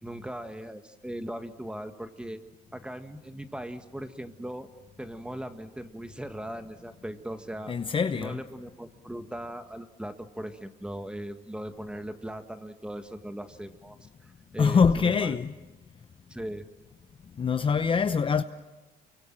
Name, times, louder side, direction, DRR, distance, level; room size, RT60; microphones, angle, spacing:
voice 1, 0.0-2.4 2.7-4.7 5.0-7.7 8.1-14.0 14.2-15.4 16.3-16.7, right 1 dB, 5° right, 1.8 m, -39 dB
voice 2, 7.7-8.4 14.6-15.5 17.3-18.4, left 5 dB, 30° left, 0.8 m, -24 dB
29.5 x 24.0 x 7.6 m
cardioid pair, 110°, 17 cm